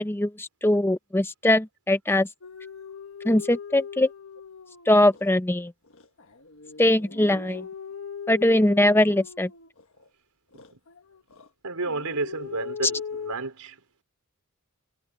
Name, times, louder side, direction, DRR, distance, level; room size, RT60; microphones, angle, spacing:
voice 1, 0.0-2.3 3.2-4.1 4.9-5.7 6.8-7.6 8.3-9.5, left 1 dB, 10° left, 0.7 m, -21 dB
sound 1, 2.4-5.3 5.9-10.1 10.5-11.5 11.8-13.3, left 6 dB, 65° left, 1.4 m, -40 dB
voice 2, 11.6-14.0, right 3 dB, 90° right, 4.3 m, -32 dB
head